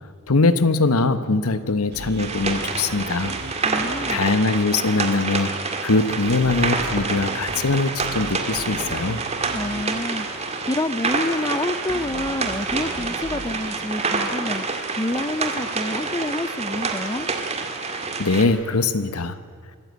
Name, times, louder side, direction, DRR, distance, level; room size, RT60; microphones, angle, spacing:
voice 1, 0.3-3.3 4.1-5.5 5.8-9.2 17.9-19.4, left 3 dB, 85° left, 12 dB, 1.1 m, -21 dB
sound 1, 1.9-16.1, right 2 dB, 50° right, 1.4 m, -40 dB
sound 2, 2.2-18.4, right 4 dB, 30° right, 2.0 m, -27 dB
voice 2, 3.6-4.2 9.5-14.7 15.0-17.3, left 1 dB, 15° left, 16 dB, 0.5 m, -28 dB
23.5 x 14.0 x 9.3 m, 2.2 s
head